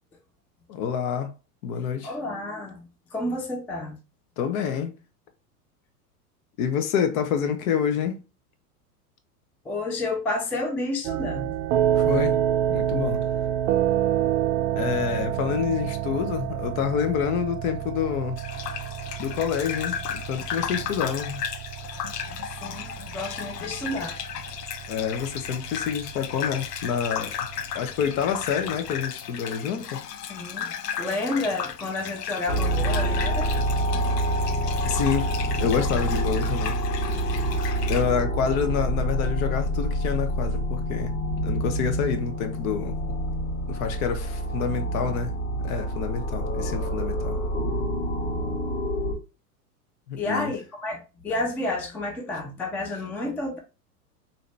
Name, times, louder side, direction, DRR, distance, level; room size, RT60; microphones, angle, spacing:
voice 1, 0.7-1.3 1.6-2.1 4.4-4.9 6.6-8.2 12.0-12.4 12.7-13.2 14.7-18.4 19.2-21.4 24.9-27.5 27.7-30.0 33.9-34.1 34.8-35.3 35.6-37.2 37.9-41.1 41.4-43.0 43.7-45.3 45.6-47.4 50.1-50.5, left 7 dB, 60° left, 1.0 m, -27 dB
voice 2, 2.0-4.0 9.7-11.6 22.6-24.2 30.3-33.5 50.2-53.6, left 2 dB, 5° left, 0.3 m, -30 dB
sound 1, 11.0-29.0, right 11 dB, 55° right, 0.5 m, -28 dB
Gurgling / Bathtub (filling or washing), 18.4-38.0, left 8 dB, 90° left, 0.7 m, -35 dB
sound 2, 32.5-49.1, right 1 dB, 25° left, 1.6 m, -27 dB
4.0 x 2.8 x 3.2 m
hypercardioid pair, 110°, 47 cm